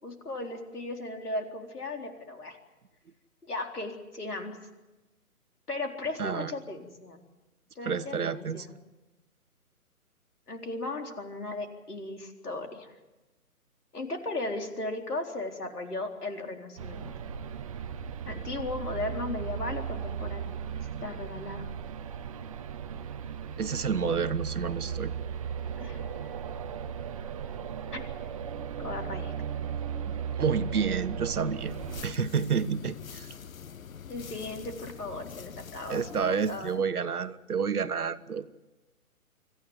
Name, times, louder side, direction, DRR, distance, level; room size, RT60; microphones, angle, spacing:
voice 1, 0.0-2.6 3.4-4.6 5.7-7.2 7.8-8.7 10.5-12.9 13.9-17.1 18.3-21.6 25.8-26.0 27.9-28.0 28.8-29.3 34.1-36.8, left 2 dB, 85° left, 4 dB, 4.1 m, -36 dB
voice 2, 6.2-6.5 7.8-8.7 23.6-25.1 30.1-31.7 32.0-33.4 35.9-38.5, right 6 dB, 75° right, 12 dB, 1.4 m, -29 dB
sound 1, 16.8-32.0, right 8 dB, 25° right, 0.7 m, -36 dB
sound 2, 24.4-33.6, equal, 5° left, 1.4 m, -54 dB
sound 3, 31.5-36.8, left 7 dB, 65° left, 1.0 m, -45 dB
26.0 x 14.5 x 9.6 m, 1.1 s
figure-of-eight pair, 145°, 45 cm